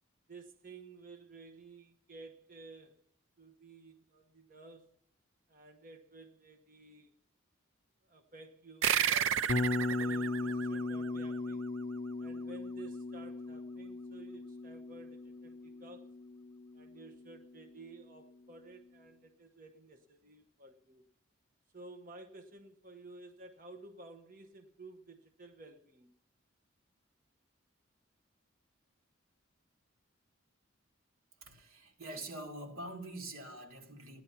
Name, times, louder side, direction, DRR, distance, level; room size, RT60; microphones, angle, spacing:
voice 1, 0.3-3.0 3.4-4.9 5.5-7.1 8.0-11.6 12.2-16.1 16.7-21.0 21.7-26.1, right 3 dB, 40° right, 0.9 m, -53 dB
sound 1, 8.8-11.8, right 9 dB, 70° right, 0.5 m, -33 dB
Bass guitar, 9.5-17.6, left 3 dB, 35° left, 0.4 m, -38 dB
voice 2, 31.4-34.2, right 1 dB, 90° right, 2.0 m, -45 dB
15.0 x 10.5 x 5.8 m
head